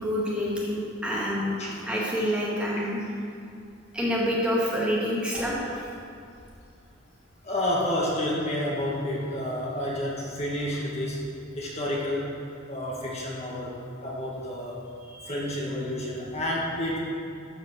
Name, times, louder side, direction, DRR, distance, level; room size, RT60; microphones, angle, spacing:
voice 1, 0.0-1.6 1.9-3.0 3.9-5.6 15.1-15.3, equal, 5° right, -7 dB, 2.1 m, -27 dB
voice 2, 7.4-11.2 11.6-12.3 12.7-13.7 14.0-14.8 15.3-17.0, left 1 dB, 35° left, -5 dB, 1.9 m, -30 dB
13.0 x 5.6 x 6.8 m, 2.5 s
head